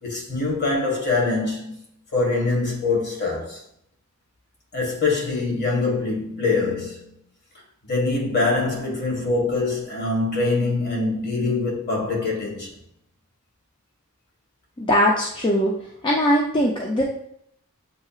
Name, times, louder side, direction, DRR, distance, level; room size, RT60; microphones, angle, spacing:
voice 1, 0.0-1.8 2.1-3.6 4.7-7.2 7.9-12.7, left 3 dB, 50° left, 1.6 m, -24 dB
voice 2, 14.8-15.7 16.0-17.0, equal, 20° left, 0.5 m, -20 dB
7.6 x 2.8 x 2.4 m
head